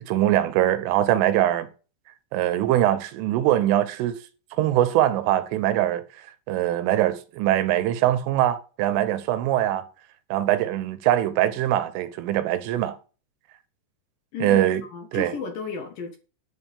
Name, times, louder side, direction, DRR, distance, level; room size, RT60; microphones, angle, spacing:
voice 1, 0.1-1.7 2.3-4.2 4.6-6.0 6.5-9.9 10.3-13.0 14.4-14.8 15.1-15.3, right 13 dB, 85° right, 3.6 m, -22 dB
voice 2, 14.9-16.2, left 5 dB, 60° left, 2.6 m, -33 dB
11.0 x 5.4 x 8.3 m
omnidirectional pair, 5.5 m